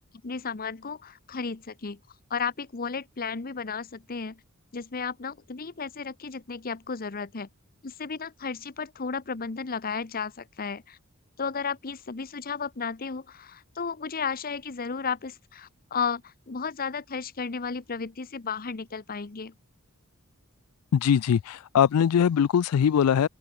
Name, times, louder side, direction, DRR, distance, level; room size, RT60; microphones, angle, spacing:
voice 1, 0.2-2.0 2.3-4.4 4.7-7.5 7.8-11.0 11.4-16.2 16.5-19.5, left 5 dB, 40° left, 0.9 m, -33 dB
voice 2, 20.9-23.3, left 8 dB, 85° left, 0.4 m, -21 dB
open air
head